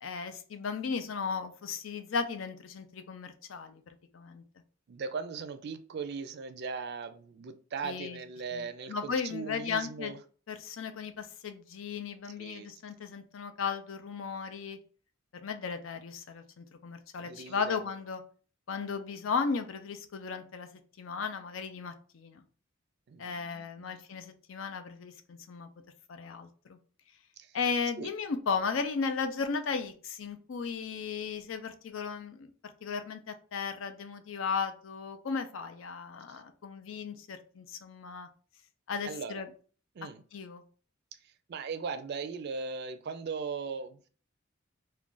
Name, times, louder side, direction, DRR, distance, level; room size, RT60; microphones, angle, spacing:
voice 1, 0.0-4.4 7.8-8.2 8.5-10.1 10.5-14.8 15.4-18.2 18.7-20.7 21.0-22.4 23.2-25.7 26.1-26.8 27.5-38.3 38.9-39.5 40.3-40.6, left 5 dB, 75° left, 0.5 m, -35 dB
voice 2, 4.9-10.2 12.4-12.7 17.2-17.9 23.1-24.0 27.4-27.6 28.0-28.1 36.3-36.4 39.0-39.4 39.9-40.2 41.1-44.1, right 5 dB, 55° right, 0.4 m, -39 dB
2.4 x 2.2 x 3.7 m
head